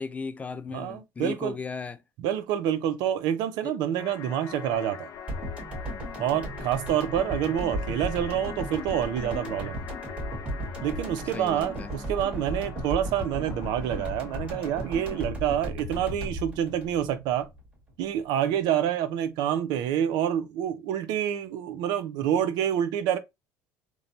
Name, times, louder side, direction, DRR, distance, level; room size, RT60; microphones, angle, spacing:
voice 1, 0.0-2.0 3.6-3.7 11.3-11.9, left 4 dB, 20° left, 0.3 m, -36 dB
voice 2, 0.7-1.6 2.2-5.1 6.2-9.8 10.8-17.5 18.0-23.2, right 10 dB, 70° right, 0.5 m, -27 dB
sound 1, 4.0-15.3, left 8 dB, 55° left, 0.7 m, -42 dB
sound 2, 5.3-17.6 17.9-18.0, right 1 dB, 20° right, 1.7 m, -36 dB
3.1 x 2.1 x 2.6 m
cardioid pair, 120°, 7 cm